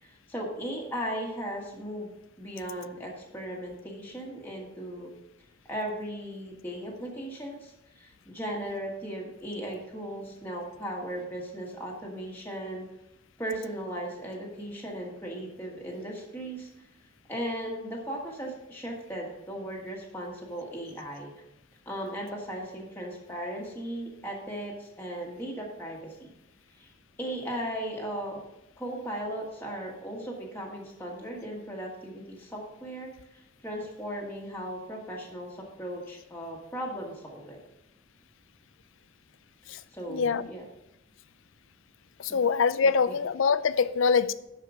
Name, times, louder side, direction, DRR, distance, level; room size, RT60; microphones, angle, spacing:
voice 1, 0.0-2.1 2.4-5.1 5.7-12.8 13.4-16.7 17.3-21.3 21.8-26.3 26.7-26.9 27.2-28.4 28.8-37.6 39.9-40.6 42.3-42.4, right 1 dB, 10° left, -3 dB, 1.5 m, -37 dB
voice 2, 40.1-40.5 42.2-44.3, left 5 dB, 75° left, 15 dB, 0.4 m, -24 dB
11.0 x 4.8 x 4.9 m, 0.86 s
head